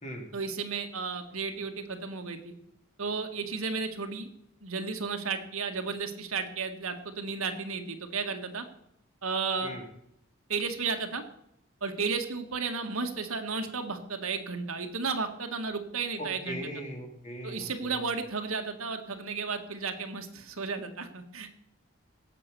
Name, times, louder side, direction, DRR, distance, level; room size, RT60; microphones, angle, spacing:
voice 1, 0.3-2.5 3.0-4.3 4.6-8.6 9.2-9.7 10.5-11.2 11.8-16.7 17.4-21.5, right 4 dB, 85° right, 5 dB, 1.8 m, -33 dB
voice 2, 16.2-18.0, equal, 35° left, 1 dB, 3.2 m, -39 dB
17.5 x 7.7 x 6.8 m, 0.77 s
head